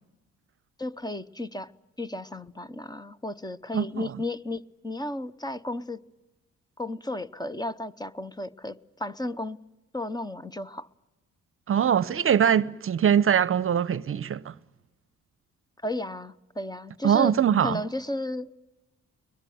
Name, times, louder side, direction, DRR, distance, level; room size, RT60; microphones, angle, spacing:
voice 1, 0.8-1.7 2.0-6.0 6.8-9.6 9.9-10.9 15.8-17.3 17.6-18.5, left 1 dB, 15° left, 0.8 m, -34 dB
voice 2, 3.7-4.1 11.7-14.5 17.0-17.8, right 8 dB, 45° right, 0.8 m, -22 dB
22.0 x 21.0 x 9.3 m
cardioid pair, 90°, 30 cm